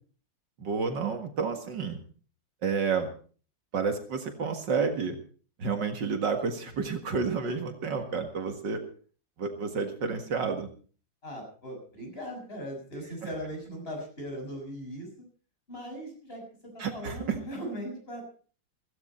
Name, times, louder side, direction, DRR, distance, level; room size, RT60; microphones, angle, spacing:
voice 1, 0.6-2.0 2.6-3.1 3.7-5.2 5.6-8.8 9.4-10.7 16.8-17.4, right 5 dB, 70° right, 6 dB, 2.4 m, -30 dB
voice 2, 11.2-15.1 15.7-18.2, equal, 30° left, 1 dB, 7.0 m, -39 dB
16.0 x 15.5 x 4.4 m, 0.41 s
omnidirectional pair, 2.0 m